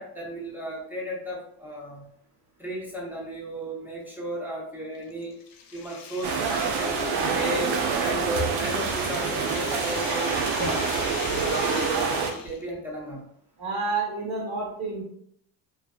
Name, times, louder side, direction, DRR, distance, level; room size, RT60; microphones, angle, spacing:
voice 1, 0.0-2.1 2.6-5.4 5.7-10.4 11.0-12.1 12.4-13.2, equal, 5° right, -4 dB, 0.8 m, -34 dB
sound 1, 4.9-12.7, left 6 dB, 55° left, 0.6 m, -40 dB
sound 2, 6.2-12.3, right 5 dB, 65° right, 0.6 m, -26 dB
voice 2, 13.6-15.0, right 3 dB, 40° right, -4 dB, 1.3 m, -29 dB
2.4 x 2.3 x 2.4 m, 0.68 s
supercardioid pair, 95°, 44 cm